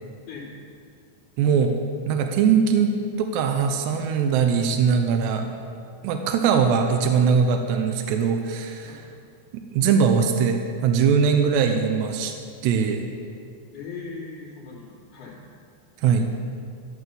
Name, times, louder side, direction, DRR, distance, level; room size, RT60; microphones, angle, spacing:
voice 1, 0.3-0.6 8.8-9.0 13.7-15.4, left 4 dB, 45° left, -9 dB, 3.0 m, -39 dB
voice 2, 1.4-1.8 2.1-5.5 6.0-9.0 9.5-12.3 12.6-13.1 16.0-16.3, right 6 dB, 85° right, 5 dB, 3.0 m, -21 dB
12.5 x 11.0 x 6.9 m, 2.3 s
omnidirectional pair, 4.8 m